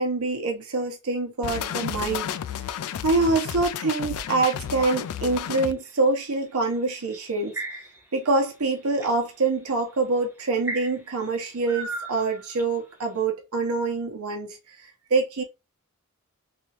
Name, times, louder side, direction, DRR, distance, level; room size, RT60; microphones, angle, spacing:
voice 1, 0.0-2.3 2.5-2.7 3.0-7.5 8.1-15.4, right 3 dB, 85° right, 0.9 m, -25 dB
sound 1, 1.4-5.7, left 9 dB, 90° left, 0.3 m, -32 dB
sound 2, 4.7-5.9 6.9-8.2 8.6-9.1 9.8-9.9 10.6-12.8, right 2 dB, 10° right, 1.0 m, -36 dB
3.3 x 2.9 x 2.9 m
head